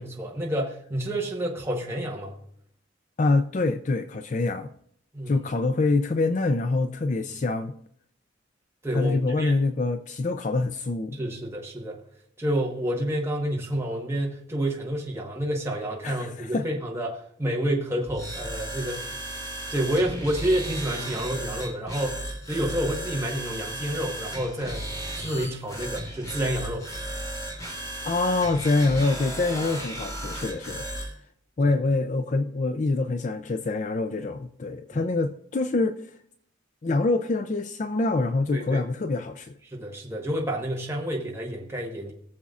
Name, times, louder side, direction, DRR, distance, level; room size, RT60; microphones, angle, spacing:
voice 1, 0.0-2.3 5.1-5.3 8.8-9.5 11.1-12.0 12.4-19.2 19.7-24.8 25.1-26.8 31.6-31.7 38.5-38.8 39.7-42.1, right 1 dB, 15° right, 1.3 m, -29 dB
voice 2, 3.2-4.7 5.3-7.7 8.9-11.2 16.0-16.7 28.0-30.9 31.6-36.1 36.8-39.5, left 3 dB, 40° left, 0.4 m, -25 dB
sound 1, 18.1-31.1, right 1 dB, 20° left, 3.0 m, -35 dB
19.5 x 7.1 x 2.5 m
head